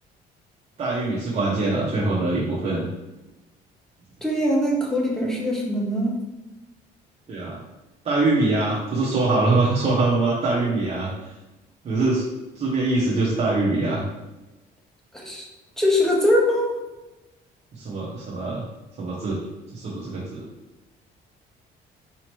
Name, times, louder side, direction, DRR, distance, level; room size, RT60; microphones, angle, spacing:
voice 1, 0.8-2.9 7.3-7.6 8.0-11.1 11.8-12.3 12.5-14.0 17.7-18.6 19.0-19.4 19.7-20.5, right 2 dB, 40° right, -7 dB, 0.9 m, -23 dB
voice 2, 4.2-6.2 15.1-15.4 15.8-16.8, left 1 dB, 5° left, -2 dB, 1.0 m, -22 dB
4.1 x 2.8 x 3.1 m, 1.0 s
cardioid pair, 110°, 17 cm